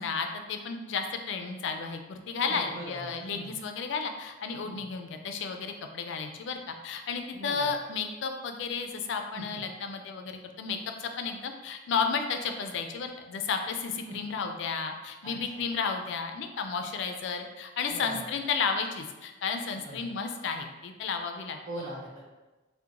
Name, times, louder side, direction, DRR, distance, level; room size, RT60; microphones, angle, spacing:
voice 1, 0.0-21.6, left 5 dB, 65° left, 6 dB, 0.3 m, -33 dB
voice 2, 2.4-3.5 4.6-4.8 7.3-7.7 9.3-9.6 14.1-14.3 15.2-15.6 17.9-18.2 19.8-20.1 21.7-22.2, right 1 dB, 50° right, -7 dB, 0.9 m, -41 dB
2.8 x 2.1 x 3.6 m, 1.2 s
head